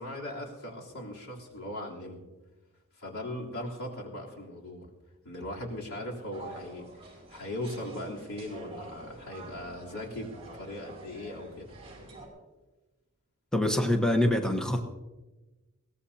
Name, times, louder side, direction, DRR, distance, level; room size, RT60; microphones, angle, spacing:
voice 1, 0.0-2.2 3.0-4.9 5.2-11.7, left 1 dB, 75° left, -3 dB, 3.5 m, -39 dB
sound 1, 6.3-12.3, right 2 dB, 30° right, 4.4 m, -47 dB
voice 2, 13.5-14.8, left 1 dB, 5° left, 4 dB, 1.2 m, -25 dB
22.0 x 17.5 x 2.8 m, 1.1 s
head